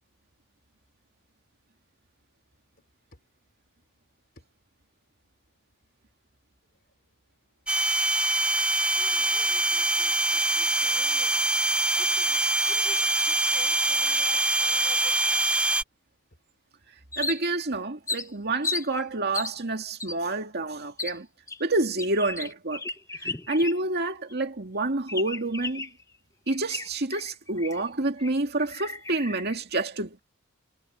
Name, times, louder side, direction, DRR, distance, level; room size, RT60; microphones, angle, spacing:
sound 1, 7.7-15.8, right 2 dB, 5° right, 0.4 m, -24 dB
voice 1, 9.0-11.5 11.9-15.8, left 4 dB, 45° left, 3.5 m, -48 dB
sound 2, 17.1-17.7 18.1-18.9 19.3-19.6 20.0-20.2 21.0-21.2 21.5-24.0 24.3-24.4 25.1-26.0 26.5-27.9 28.2-28.3 28.6-29.6, left 3 dB, 15° left, 1.0 m, -34 dB
voice 2, 17.2-21.3 21.6-22.9 23.2-25.9 26.5-30.2, right 2 dB, 50° right, 2.2 m, -28 dB
head